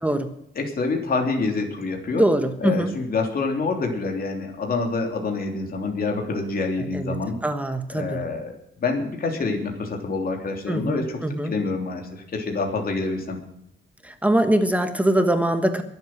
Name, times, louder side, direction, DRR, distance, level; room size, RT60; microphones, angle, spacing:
voice 1, 0.5-2.3 2.6-7.3 7.9-13.4, left 3 dB, 45° left, 2 dB, 3.3 m, -27 dB
voice 2, 2.2-2.9 6.9-7.2 7.4-8.2 10.7-11.5 14.0-15.8, right 1 dB, 5° right, 7 dB, 1.3 m, -22 dB
22.0 x 8.1 x 6.1 m, 0.78 s
cardioid pair, 130°, 21 cm